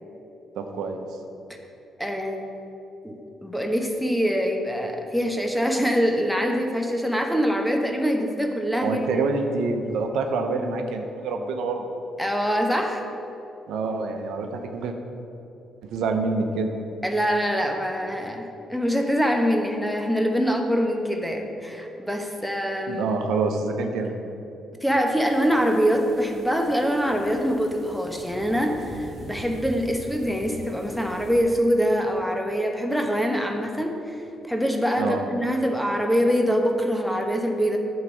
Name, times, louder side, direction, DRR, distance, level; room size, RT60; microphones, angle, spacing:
voice 1, 0.6-1.0 8.8-11.9 13.7-15.0 15.9-16.7 22.9-24.2 35.0-35.3, right 3 dB, 80° right, 5 dB, 0.8 m, -26 dB
voice 2, 2.0-2.4 3.0-9.2 12.2-13.0 17.0-23.0 24.8-37.8, equal, ahead, 3 dB, 1.0 m, -24 dB
sound 1, 25.3-31.4, right 1 dB, 35° right, 1.7 m, -43 dB
11.0 x 4.0 x 6.1 m, 2.9 s
cardioid pair, 90°, 0 cm